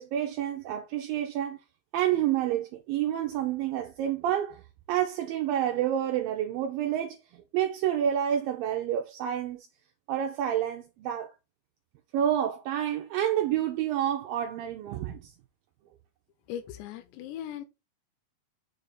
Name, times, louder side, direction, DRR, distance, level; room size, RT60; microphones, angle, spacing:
voice 1, 0.0-1.6 1.9-4.6 4.9-7.2 7.5-9.7 10.1-11.3 12.1-15.3, right 10 dB, 80° right, 2.1 m, -29 dB
voice 2, 16.5-17.7, left 10 dB, 85° left, 3.0 m, -38 dB
6.8 x 2.8 x 4.9 m
omnidirectional pair, 4.9 m